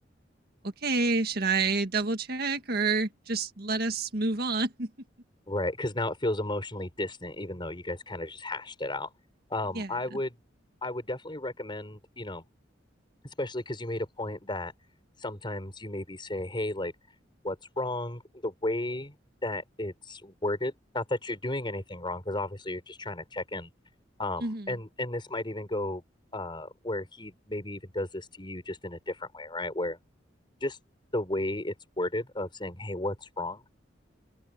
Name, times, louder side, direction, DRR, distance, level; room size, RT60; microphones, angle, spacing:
voice 1, 0.6-4.9 9.7-10.2 24.4-24.8, right 3 dB, 55° right, 1.8 m, -29 dB
voice 2, 5.5-9.1 9.5-10.4 10.8-12.4 13.4-14.7 15.2-16.9 17.4-19.1 19.4-23.7 24.2-26.0 26.3-30.0 30.6-30.8 31.1-33.6, left 1 dB, 25° left, 5.6 m, -33 dB
open air
head